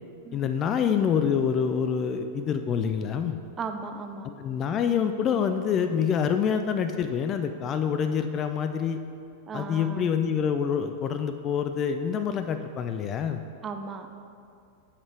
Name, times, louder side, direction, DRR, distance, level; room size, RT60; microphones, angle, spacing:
voice 1, 0.3-3.4 4.2-9.0 9.5-13.4, left 7 dB, 30° left, 8 dB, 0.3 m, -26 dB
voice 2, 3.6-4.3 9.5-10.1 13.6-14.1, right 4 dB, 25° right, 6 dB, 0.5 m, -36 dB
8.5 x 6.5 x 3.3 m, 2.5 s
figure-of-eight pair, 90°, 0 cm